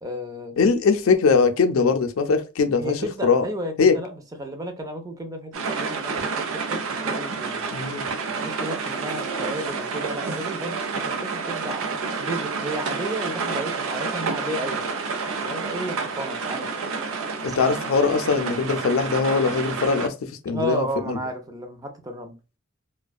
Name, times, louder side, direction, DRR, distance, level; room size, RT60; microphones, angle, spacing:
voice 1, 0.0-0.5 2.8-5.5 5.8-7.6 8.4-14.8 15.4-16.7 20.5-22.3, right 1 dB, 15° right, 0.4 m, -33 dB
voice 2, 0.6-3.5 3.8-4.0 7.7-8.1 17.4-21.2, left 5 dB, 90° left, 0.4 m, -21 dB
sound 1, 5.5-20.1, right 4 dB, 90° right, 0.5 m, -29 dB
2.5 x 2.2 x 2.2 m
head